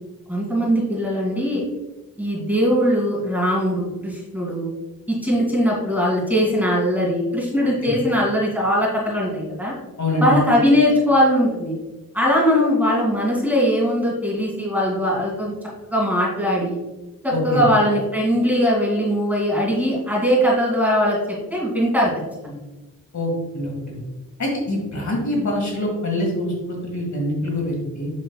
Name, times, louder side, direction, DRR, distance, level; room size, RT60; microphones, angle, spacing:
voice 1, 0.3-1.6 2.2-4.7 5.1-9.7 10.2-11.7 12.1-15.5 15.9-16.8 17.2-22.1 22.4-22.6, equal, 5° right, -4 dB, 2.2 m, -20 dB
voice 2, 10.0-10.4 17.3-17.6 23.1-24.0 24.4-28.1, left 1 dB, 50° left, -1 dB, 1.8 m, -24 dB
7.3 x 6.3 x 2.3 m, 1.1 s
wide cardioid pair, 130°, 35 cm